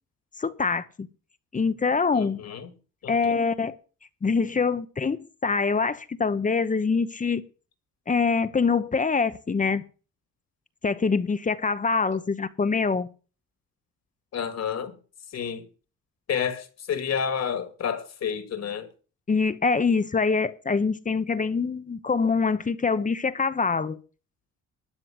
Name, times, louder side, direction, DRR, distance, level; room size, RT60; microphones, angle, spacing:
voice 1, 0.4-1.1 1.5-2.4 3.1-3.7 4.2-7.4 8.1-9.8 10.8-13.1 19.3-24.0, left 4 dB, 25° left, 0.9 m, -24 dB
voice 2, 2.1-2.7 3.0-3.3 12.1-12.2 14.3-15.0 15.3-15.6 16.3-18.9, left 7 dB, 60° left, 2.3 m, -30 dB
12.5 x 6.8 x 7.7 m
cardioid pair, 90°, 30 cm